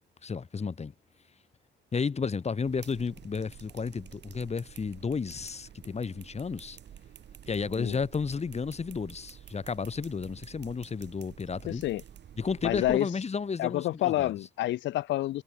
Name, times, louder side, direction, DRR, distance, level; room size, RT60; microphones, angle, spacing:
voice 1, 0.2-0.9 1.9-6.8 7.5-11.8 12.4-14.3, left 5 dB, 35° left, 2.0 m, -32 dB
sound 1, 2.6-13.0, right 9 dB, 60° right, 2.4 m, -50 dB
voice 2, 11.7-12.0 12.6-13.1 13.6-15.4, left 15 dB, 70° left, 0.4 m, -28 dB
cardioid pair, 90°, 20 cm